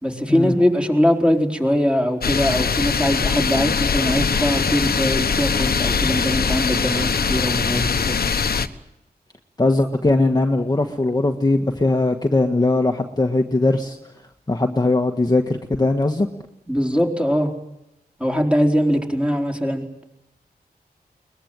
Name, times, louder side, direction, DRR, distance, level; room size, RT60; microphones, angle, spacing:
voice 1, 0.0-8.2 16.7-17.5 18.2-19.9, equal, 5° right, 1 dB, 4.3 m, -21 dB
sound 1, 2.2-8.7, left 5 dB, 70° left, 1.2 m, -22 dB
voice 2, 9.6-14.0 14.5-16.3, left 2 dB, 25° left, 4 dB, 1.7 m, -20 dB
22.5 x 21.0 x 9.1 m, 0.86 s
wide cardioid pair, 80°, 16 cm